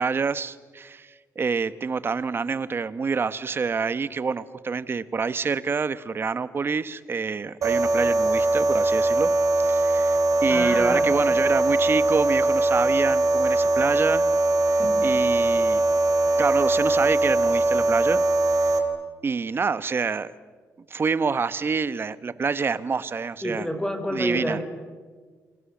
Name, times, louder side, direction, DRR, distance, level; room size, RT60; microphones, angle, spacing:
voice 1, 0.0-9.3 9.6-14.2 15.0-15.8 16.4-18.2 18.6-18.7 19.2-20.3 20.9-23.7 24.1-24.6, right 5 dB, 40° right, 14 dB, 1.2 m, -27 dB
sound 1, 7.6-18.8, right 2 dB, 65° right, 3.5 m, -21 dB
voice 2, 10.5-11.1 14.8-15.0 23.4-24.7, equal, 10° left, 7 dB, 4.6 m, -28 dB
28.5 x 26.5 x 7.4 m, 1.5 s
cardioid pair, 105°, 6 cm